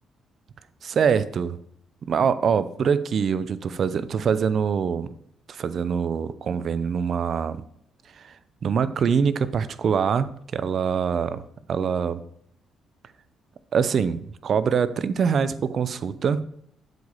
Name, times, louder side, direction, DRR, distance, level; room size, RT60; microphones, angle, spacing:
voice 1, 0.8-1.6 2.0-5.1 5.5-7.6 8.2-8.3 8.6-11.4 11.7-12.2 13.7-16.4, right 6 dB, 55° right, 14 dB, 0.6 m, -24 dB
7.8 x 4.9 x 7.2 m, 0.68 s
cardioid pair, 90°, 0 cm